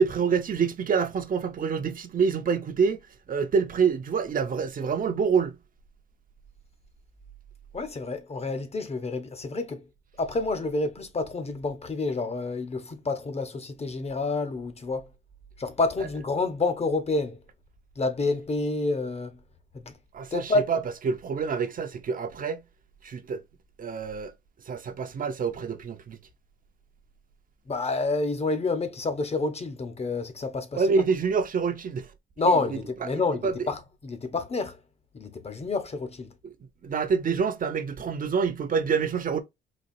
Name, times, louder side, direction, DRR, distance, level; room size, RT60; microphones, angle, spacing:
voice 1, 0.0-3.0 3.3-5.6 20.1-22.6 23.0-23.4 23.8-24.3 24.7-26.2 30.7-32.1 33.0-33.6 36.4-36.5 36.8-39.4, right 5 dB, 45° right, 0.7 m, -26 dB
voice 2, 7.7-9.8 10.2-15.1 15.6-17.4 18.0-19.3 19.7-19.9 20.3-20.8 27.7-30.8 32.4-34.8 35.1-36.3, left 3 dB, 30° left, 0.8 m, -28 dB
4.1 x 2.4 x 2.6 m
cardioid pair, 90°, 20 cm